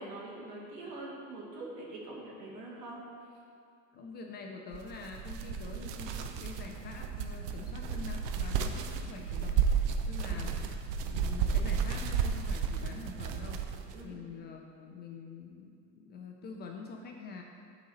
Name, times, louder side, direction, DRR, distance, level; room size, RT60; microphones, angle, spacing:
voice 1, 0.0-3.0 10.3-10.4 13.9-14.2, right 2 dB, 85° right, -3 dB, 1.7 m, -44 dB
voice 2, 3.9-9.7 10.1-10.6 11.0-13.6 14.0-17.4, left 4 dB, 25° left, 1 dB, 0.3 m, -45 dB
sound 1, 4.7-14.0, right 6 dB, 45° right, 0.5 m, -33 dB
8.8 x 4.0 x 4.0 m, 2.4 s
hypercardioid pair, 95°, 47 cm